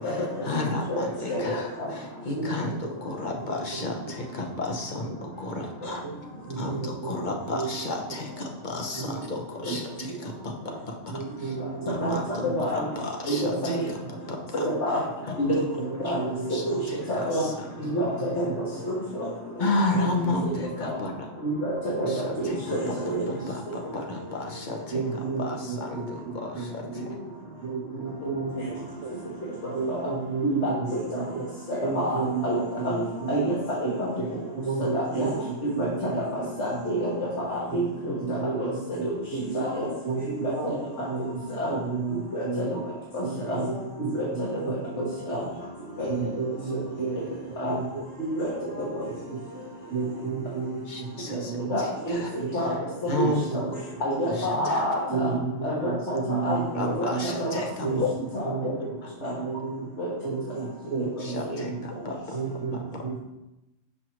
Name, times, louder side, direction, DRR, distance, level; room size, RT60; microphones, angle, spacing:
voice 1, 0.0-6.0 6.6-10.5 10.9-11.6 11.8-15.6 16.0-16.1 16.5-17.0 17.3-17.7 18.0-18.2 19.6-21.3 22.1-25.0 25.4-27.0 50.9-52.8 53.1-53.6 54.3-54.9 56.7-58.1 58.6-58.7 59.0-59.1 61.2-62.4 62.7-63.0, left 2 dB, 45° left, 2 dB, 0.9 m, -33 dB
voice 2, 3.4-4.1 6.0-6.2 6.5-7.8 9.0-9.1 9.7-10.1 11.1-12.7 13.5-14.3 14.7-14.8 15.8-16.9 17.8-18.5 19.9-20.6 20.9-21.0 22.0-22.6 22.8-23.5 24.9-27.2 27.6-29.3 29.7-31.5 31.8-33.5 33.8-33.9 34.5-37.1 37.7-39.7 40.0-42.8 43.2-45.0 45.3-45.5 46.1-48.0 48.6-48.9 49.1-49.4 49.9-51.8 52.3-52.8 53.2-53.7 54.3-54.4 55.1-57.3 57.8-58.0 58.5-59.9 60.2-61.9 62.3-63.2, right 5 dB, 70° right, 0 dB, 1.1 m, -33 dB
voice 3, 12.4-12.8 13.3-13.8 14.8-15.0 15.4-15.6 16.0-16.2 16.6-16.8 17.1-17.4 17.9-18.4 18.9-19.3 21.4-21.7 22.0-23.2 28.2-28.3 29.9-30.0 30.4-30.6 31.1-31.2 31.9-32.1 32.4-32.6 32.8-33.6 34.0-34.1 34.9-35.3 35.6-35.7 36.1-36.2 36.6-37.1 37.4-38.7 39.0-39.1 39.5-39.9 40.6-40.7 41.6-41.7 42.3-42.4 43.1-43.2 43.5-43.8 44.1-44.3 44.7-45.4 46.0-46.3 47.6-47.7 48.2-48.5 48.9-49.0 51.7-52.2 52.5-52.7 53.5-53.6 54.0-55.3 55.6-55.9 56.4-56.6 57.0-57.1 57.4-57.5 58.3-58.7 59.2-59.3 60.0-60.1, equal, 65° left, -6 dB, 1.7 m, -28 dB
6.1 x 6.0 x 3.0 m, 0.93 s
omnidirectional pair, 1.3 m